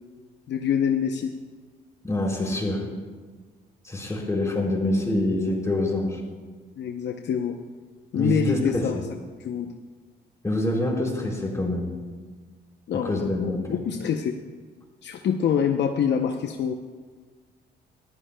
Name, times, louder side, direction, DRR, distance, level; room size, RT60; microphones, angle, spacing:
voice 1, 0.5-1.3 6.8-7.6 8.1-9.0 9.4-9.7 12.9-14.4 15.0-16.7, left 7 dB, 65° left, 5 dB, 0.7 m, -25 dB
voice 2, 2.0-2.9 3.8-6.2 8.1-9.0 10.4-11.9 13.0-13.6, left 1 dB, 15° left, -2 dB, 4.4 m, -26 dB
21.5 x 13.5 x 2.2 m, 1.4 s
cardioid pair, 90°, 20 cm